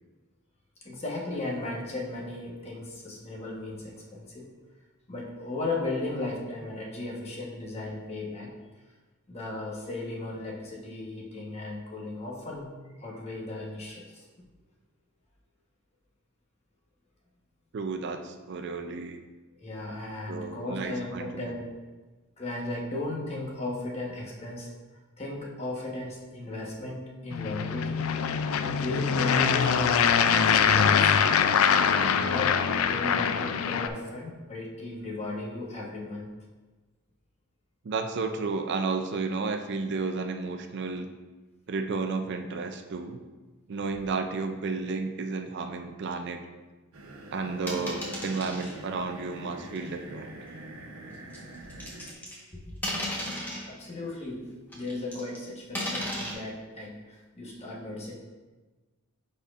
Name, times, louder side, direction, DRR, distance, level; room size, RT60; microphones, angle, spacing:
voice 1, 0.8-4.5 5.1-8.5 9.3-12.7 13.0-14.2 19.6-21.7 22.4-24.7 25.2-28.1 28.6-31.6 32.1-32.6 32.9-36.3 52.5-52.6 53.7-58.1, left 2 dB, 30° left, -3 dB, 1.1 m, -36 dB
voice 2, 17.7-19.2 20.3-21.3 37.8-41.1 41.7-43.2 43.7-46.4 47.3-50.3, right 4 dB, 55° right, 6 dB, 0.4 m, -32 dB
sound 1, 27.3-33.9, left 7 dB, 70° left, 0.4 m, -23 dB
sound 2, 46.9-52.1, right 1 dB, 75° right, 0.9 m, -44 dB
sound 3, 47.7-48.7 49.8-49.9 51.3-52.5 52.8-53.7 54.7-55.4 55.8-56.3, equal, 10° left, 1.2 m, -34 dB
10.0 x 4.2 x 2.5 m, 1.3 s
head